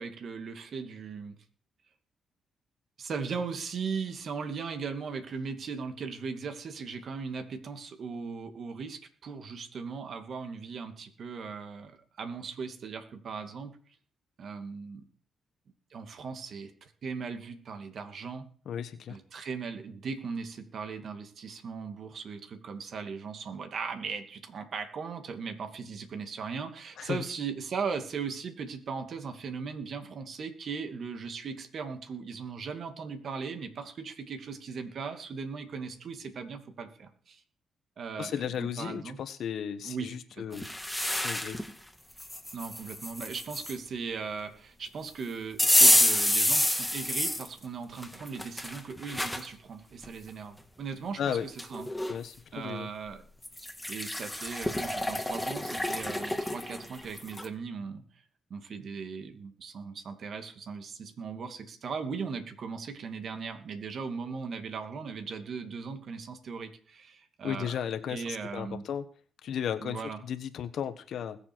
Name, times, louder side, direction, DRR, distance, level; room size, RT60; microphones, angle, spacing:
voice 1, 0.0-1.4 3.0-13.8 14.4-15.0 15.9-18.5 19.1-37.4 38.0-39.2 39.8-40.6 42.5-51.9 52.5-53.2 53.9-58.0 58.5-67.8 68.1-68.9 69.8-70.2, right 5 dB, 60° right, 7 dB, 2.5 m, -38 dB
voice 2, 18.7-19.2 27.0-27.2 38.2-40.7 41.1-41.6 51.2-51.5 52.1-52.9 67.4-69.0 69.4-71.4, left 8 dB, 75° left, 12 dB, 1.3 m, -35 dB
sound 1, 40.5-41.7 42.2-43.8 45.6-47.5 48.0-49.5 50.0-50.1 51.2-51.3 51.6-52.2 53.4-57.5, left 1 dB, 5° left, 1.9 m, -28 dB
21.0 x 7.2 x 4.6 m, 0.42 s
cardioid pair, 75°, 0 cm